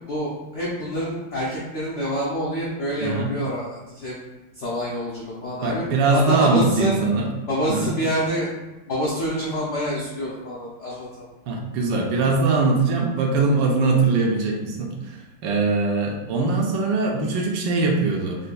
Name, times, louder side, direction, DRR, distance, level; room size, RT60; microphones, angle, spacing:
voice 1, 0.1-4.1 4.5-5.8 6.1-6.9 7.5-8.5 8.9-11.2, equal, 75° left, -6 dB, 0.6 m, -27 dB
voice 2, 3.0-3.3 5.6-7.3 7.7-7.9 11.5-18.4, right 3 dB, 75° right, 0 dB, 1.2 m, -21 dB
4.1 x 2.6 x 2.2 m, 1.1 s
omnidirectional pair, 2.0 m